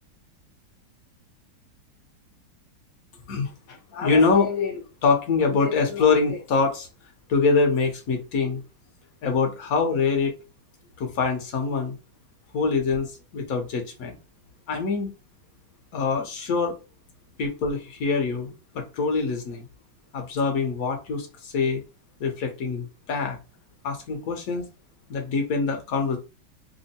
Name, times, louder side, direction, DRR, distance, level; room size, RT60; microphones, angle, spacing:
voice 1, 3.3-6.9 7.3-8.6 9.2-10.4 11.0-11.9 12.5-14.1 14.7-15.1 15.9-16.7 17.4-19.7 20.1-21.8 22.2-23.4 23.8-24.7 25.1-26.2, left 4 dB, 55° left, 3 dB, 1.0 m, -24 dB
3.5 x 2.1 x 4.1 m, 0.30 s
omnidirectional pair, 2.2 m